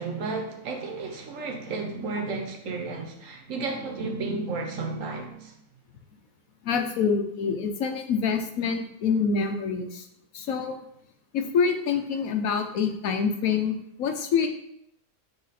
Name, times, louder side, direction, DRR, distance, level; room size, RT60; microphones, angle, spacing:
voice 1, 0.0-5.6, right 3 dB, 65° right, 2 dB, 1.3 m, -32 dB
voice 2, 6.6-10.1 10.3-10.8 11.3-14.5, left 6 dB, 75° left, 5 dB, 1.1 m, -26 dB
8.3 x 2.9 x 4.1 m, 0.74 s
omnidirectional pair, 1.5 m